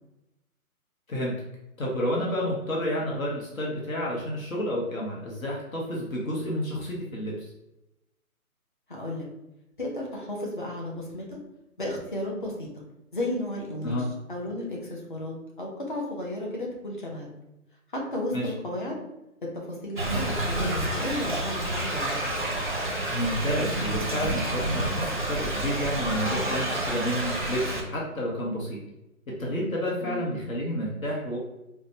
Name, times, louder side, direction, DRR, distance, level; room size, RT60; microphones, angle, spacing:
voice 1, 1.8-7.5 13.8-14.1 18.3-18.5 23.1-28.8 29.4-31.4, equal, 65° left, -4 dB, 1.2 m, -30 dB
voice 2, 8.9-9.3 9.8-11.4 11.8-12.8 13.1-14.0 14.3-17.3 17.9-19.0 19.5-22.2 30.0-30.3, left 1 dB, 35° left, -2 dB, 0.7 m, -33 dB
Thunder / Rain, 20.0-27.8, right 1 dB, 35° right, 0.5 m, -29 dB
4.9 x 2.2 x 2.7 m, 0.91 s
hypercardioid pair, 175°, 44 cm